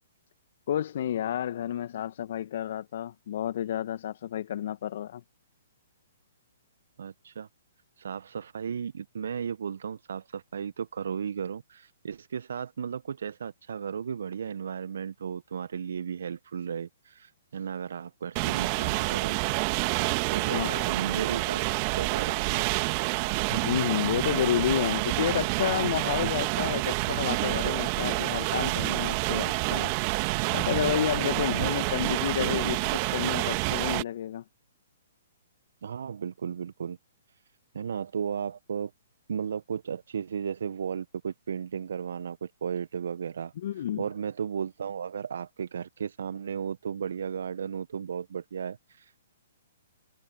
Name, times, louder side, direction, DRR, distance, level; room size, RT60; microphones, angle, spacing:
voice 1, 0.7-5.2 20.5-20.9 23.5-29.9 30.5-34.4 43.6-44.0, left 10 dB, 55° left, 1.7 m, -30 dB
voice 2, 7.0-7.5 8.0-19.6 20.3-21.6 22.0-22.6 31.2-31.7 35.8-37.0 37.7-38.9 39.3-49.2, right 7 dB, 65° right, 1.1 m, -35 dB
sound 1, 18.4-34.0, right 30 dB, 35° right, 1.7 m, -28 dB
figure-of-eight pair, 125°, 0 cm